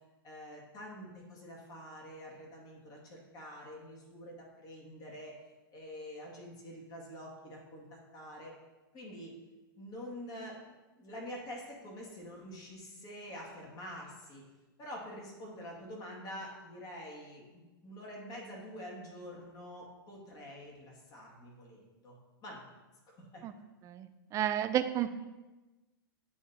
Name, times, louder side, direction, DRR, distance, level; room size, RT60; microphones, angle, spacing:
voice 1, 0.2-5.3 5.7-8.5 8.9-9.3 9.8-14.4 14.8-22.2 22.4-22.7 23.1-23.4, equal, 35° left, -2 dB, 2.1 m, -47 dB
voice 2, 23.8-25.1, right 11 dB, 25° right, 10 dB, 0.4 m, -31 dB
8.4 x 3.2 x 4.2 m, 1.1 s
hypercardioid pair, 115°, 12 cm